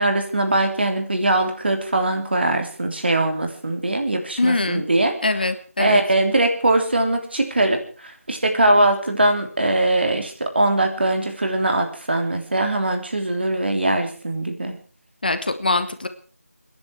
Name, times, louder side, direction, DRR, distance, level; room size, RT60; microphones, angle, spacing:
voice 1, 0.0-5.2 5.8-14.8, right 2 dB, 45° right, 5 dB, 3.2 m, -21 dB
voice 2, 4.4-4.8 5.2-6.0 15.2-16.1, left 2 dB, 40° left, 10 dB, 1.3 m, -22 dB
30.0 x 10.5 x 4.6 m, 0.39 s
figure-of-eight pair, 175°, 8 cm